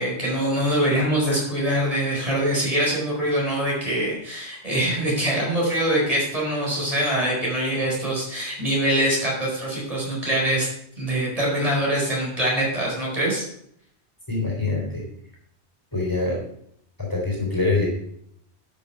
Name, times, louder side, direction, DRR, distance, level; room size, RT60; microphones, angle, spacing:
voice 1, 0.0-10.7 11.0-13.4, right 1 dB, 30° right, -4 dB, 4.6 m, -24 dB
voice 2, 14.3-15.0 15.9-16.4 17.1-17.9, left 3 dB, 15° left, -2 dB, 3.9 m, -24 dB
12.0 x 6.9 x 5.7 m, 0.71 s
omnidirectional pair, 1.2 m